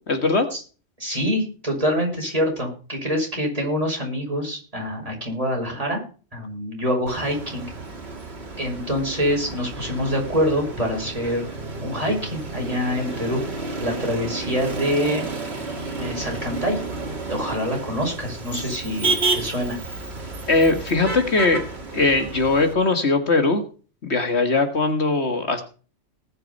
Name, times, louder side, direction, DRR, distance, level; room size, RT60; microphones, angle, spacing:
voice 1, 0.1-0.5 18.5-18.6 20.5-21.6 21.9-23.6 24.0-25.6, left 3 dB, 60° left, 7 dB, 1.9 m, -20 dB
voice 2, 1.0-6.0 6.3-7.7 8.6-11.4 11.8-13.4 13.8-15.2 16.0-16.8 17.3-19.8, equal, 30° right, 0 dB, 6.0 m, -25 dB
Motor vehicle (road), 7.1-22.7, right 3 dB, 55° right, 2.5 m, -31 dB
19.5 x 6.7 x 5.4 m, 0.38 s
omnidirectional pair, 1.3 m